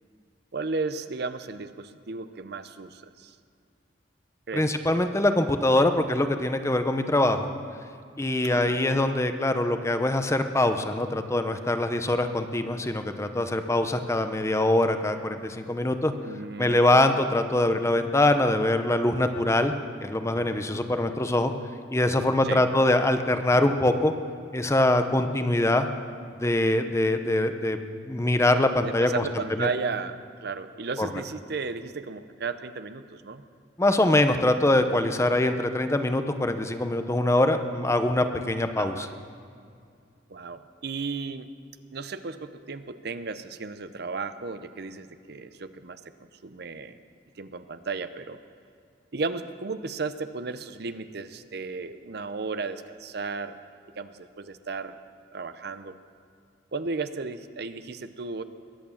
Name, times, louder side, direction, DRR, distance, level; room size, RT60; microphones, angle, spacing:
voice 1, 0.5-3.3 4.5-4.7 8.4-8.8 16.2-17.0 22.4-22.6 28.8-33.4 38.8-39.1 40.3-41.5 41.9-47.0 47.4-48.4 49.1-53.6 54.0-55.0 55.3-56.0 56.7-58.4, right 4 dB, 60° right, 11 dB, 0.7 m, -34 dB
voice 2, 4.5-7.5 8.2-16.1 16.6-19.7 20.0-21.5 21.9-24.1 24.5-25.9 26.4-27.8 28.1-29.1 29.6-29.7 31.0-31.1 33.8-39.1, left 1 dB, 15° left, 8 dB, 0.8 m, -23 dB
22.0 x 8.7 x 7.2 m, 2.3 s
head